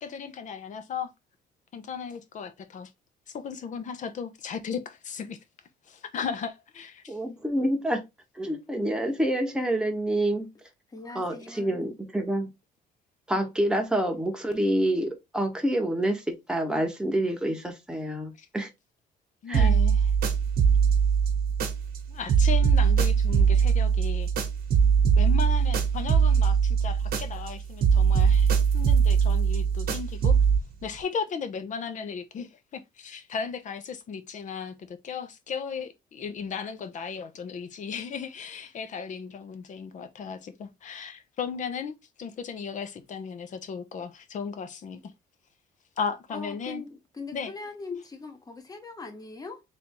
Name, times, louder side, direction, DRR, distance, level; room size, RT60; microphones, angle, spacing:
voice 1, 0.0-1.1 1.7-2.9 3.3-5.4 6.1-7.0 19.4-19.9 22.1-24.3 25.2-28.5 28.7-30.4 30.8-32.5 32.7-34.7 35.0-45.0 46.0-46.8 47.3-47.5, left 6 dB, 45° left, 0.8 m, -35 dB
voice 2, 7.1-8.0 8.3-10.5 11.1-12.5 13.3-18.7 19.5-19.8, right 1 dB, 5° right, 1.1 m, -27 dB
voice 3, 10.9-11.8 46.3-49.6, left 3 dB, 20° left, 1.1 m, -40 dB
sound 1, 19.5-22.0 22.3-27.5 27.8-30.6, right 6 dB, 65° right, 1.1 m, -22 dB
3.4 x 2.7 x 4.3 m
cardioid pair, 110°, 17 cm